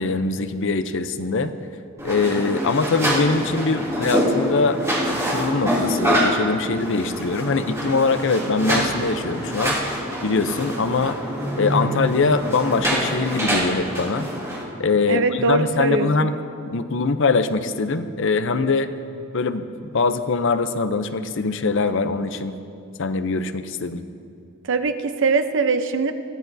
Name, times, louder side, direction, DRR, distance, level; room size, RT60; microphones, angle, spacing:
voice 1, 0.0-1.5 2.0-4.8 5.1-9.8 10.2-11.2 11.6-14.3 14.8-16.3 16.7-18.9 19.3-19.7 19.9-22.6 23.0-24.0, left 4 dB, 65° left, 10 dB, 0.6 m, -22 dB
sound 1, 2.0-14.6, equal, 15° right, 2.7 m, -25 dB
voice 2, 15.1-16.3 24.7-26.1, right 3 dB, 60° right, 8 dB, 0.7 m, -22 dB
22.0 x 15.0 x 2.7 m, 2.5 s
head